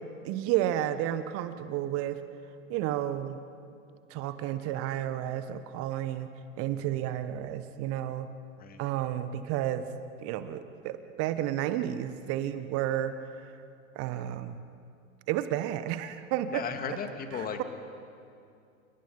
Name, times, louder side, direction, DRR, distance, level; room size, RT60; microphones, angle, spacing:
voice 1, 0.2-2.2 2.7-3.4 4.1-6.3 6.6-8.3 8.8-9.9 10.2-13.5 13.9-14.6 15.3-16.6 17.4-17.6, right 12 dB, 35° right, 11 dB, 1.3 m, -31 dB
voice 2, 16.5-17.6, left 6 dB, 20° left, 7 dB, 2.3 m, -36 dB
29.5 x 29.5 x 5.4 m, 2.5 s
figure-of-eight pair, 100°, 40 cm